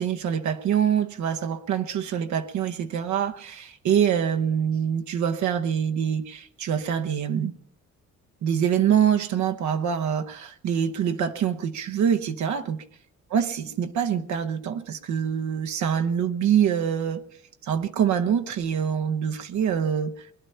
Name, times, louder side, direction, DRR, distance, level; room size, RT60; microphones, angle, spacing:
voice 1, 0.0-7.5 8.4-12.8 13.3-17.2 17.6-20.3, right 8 dB, 70° right, 6 dB, 0.9 m, -25 dB
20.5 x 11.0 x 5.5 m, 0.65 s
cardioid pair, 90°, 30 cm